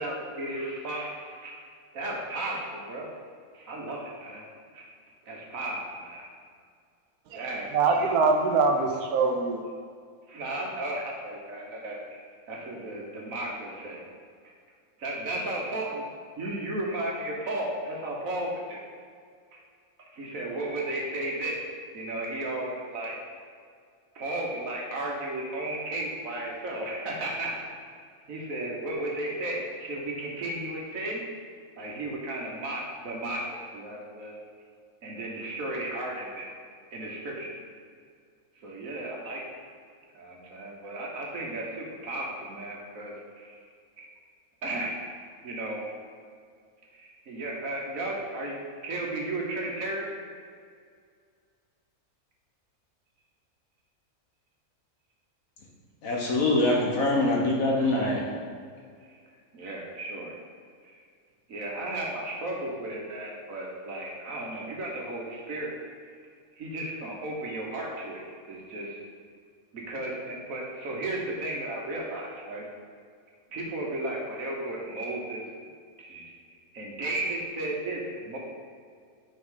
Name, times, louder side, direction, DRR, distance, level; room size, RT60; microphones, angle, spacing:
voice 1, 0.0-1.6 1.9-3.1 3.5-4.5 4.7-4.9 5.3-6.3 7.3-8.2 8.5-8.6 10.3-12.0 12.5-14.0 15.0-16.0 16.4-18.8 19.5-19.6 20.0-21.6 21.9-23.1 24.1-27.5 28.3-31.2 31.8-34.4 35.0-36.5 36.9-37.5 38.6-39.4 40.1-43.5 44.0-44.1 44.6-45.0 45.4-45.8 46.9-48.5 48.8-50.1 59.5-60.3 60.8-61.0 61.5-65.7 66.6-69.0 69.7-72.6 73.5-75.4 76.0-76.2 76.7-78.4, right 1 dB, 65° right, -2 dB, 1.6 m, -34 dB
voice 2, 7.7-9.7, right 4 dB, 85° right, 4 dB, 1.2 m, -23 dB
voice 3, 56.0-58.2, left 2 dB, 70° left, -2 dB, 1.6 m, -24 dB
6.1 x 5.4 x 3.8 m, 2.1 s
omnidirectional pair, 1.5 m